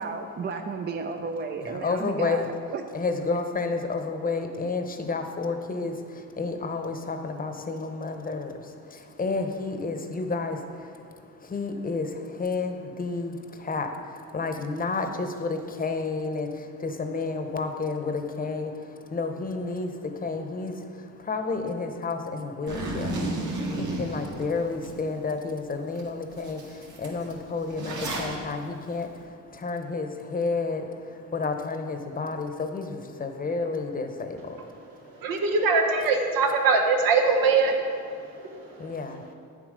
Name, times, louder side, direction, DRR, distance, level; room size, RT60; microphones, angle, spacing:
voice 1, 0.0-2.4 2.7-2.8, right 4 dB, 30° right, 5 dB, 0.4 m, -33 dB
voice 2, 1.6-2.5 2.9-35.2 38.2-39.3, left 3 dB, 25° left, 6 dB, 0.8 m, -31 dB
Zipper (clothing), 22.7-24.9 25.4-25.5 26.0-26.1 26.3-28.3, right 2 dB, 60° right, 2.0 m, -32 dB
voice 3, 35.0-38.9, right 4 dB, 85° right, 2 dB, 1.2 m, -23 dB
9.1 x 7.4 x 5.1 m, 2.2 s
cardioid pair, 125°, 34 cm